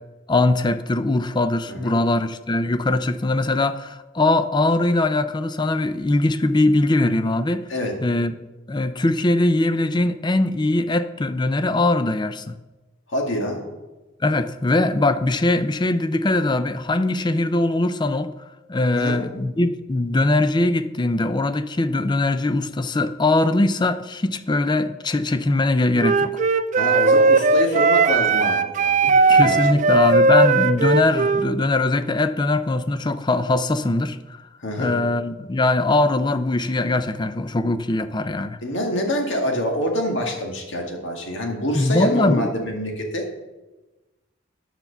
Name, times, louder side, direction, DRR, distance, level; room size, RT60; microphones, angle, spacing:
voice 1, 0.3-7.6 8.0-8.3 8.7-12.6 14.2-18.3 18.7-26.3 29.0-34.4 34.8-38.6 41.7-42.5, left 2 dB, 20° left, 11 dB, 0.4 m, -21 dB
voice 2, 13.1-13.6 18.9-19.2 26.7-29.9 34.6-35.0 38.6-43.3, equal, 65° left, 1 dB, 2.0 m, -26 dB
Wind instrument woodwind instrument, 26.0-31.5, right 3 dB, 40° right, 0.4 m, -17 dB
9.5 x 5.9 x 6.8 m, 1.1 s
head